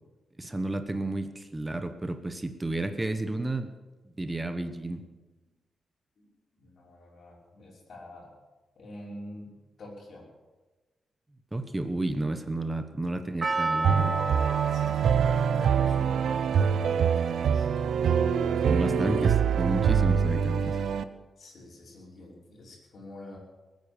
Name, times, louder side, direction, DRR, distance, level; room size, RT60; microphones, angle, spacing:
voice 1, 0.4-3.7 4.2-5.0 11.5-14.2 18.7-20.8, right 2 dB, 15° right, 8 dB, 1.1 m, -31 dB
voice 2, 6.2-8.3 8.8-10.3 14.5-17.7 21.4-23.4, left 1 dB, 55° left, -3 dB, 5.7 m, -47 dB
Percussion, 13.4-17.8 18.0-18.1, right 3 dB, 35° right, 0.6 m, -33 dB
sound 1, 13.8-21.0, right 7 dB, 80° right, 0.7 m, -24 dB
21.0 x 9.4 x 7.1 m, 1.2 s
wide cardioid pair, 135°, 0 cm